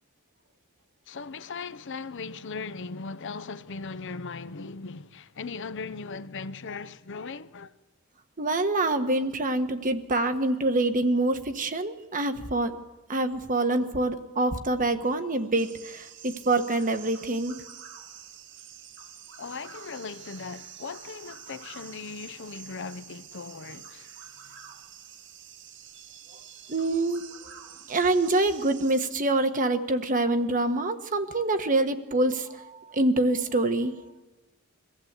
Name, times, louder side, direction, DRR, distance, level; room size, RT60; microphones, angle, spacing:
voice 1, 1.1-7.7 19.4-24.1, left 4 dB, 60° left, 0.7 m, -38 dB
voice 2, 8.4-12.8 13.1-17.6 26.7-27.2 27.9-33.9, right 2 dB, 40° right, 1.3 m, -26 dB
sound 1, 15.6-29.1, right 8 dB, 60° right, 1.5 m, -47 dB
23.5 x 15.0 x 8.2 m
head